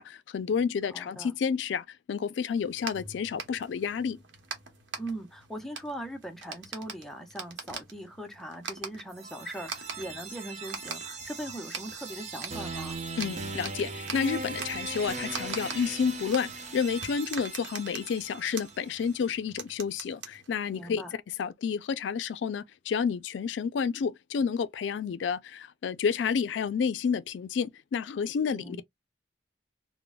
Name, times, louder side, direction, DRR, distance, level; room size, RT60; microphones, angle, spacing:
voice 1, 0.0-4.2 13.2-21.0 21.4-28.8, left 6 dB, 85° left, 0.3 m, -30 dB
voice 2, 0.9-1.3 5.0-13.0 20.7-21.1 28.5-28.8, right 1 dB, ahead, 0.5 m, -40 dB
sound 1, 2.6-21.0, right 5 dB, 90° right, 0.9 m, -44 dB
sound 2, 9.1-19.0, right 3 dB, 40° right, 0.7 m, -39 dB
3.7 x 2.0 x 2.3 m
head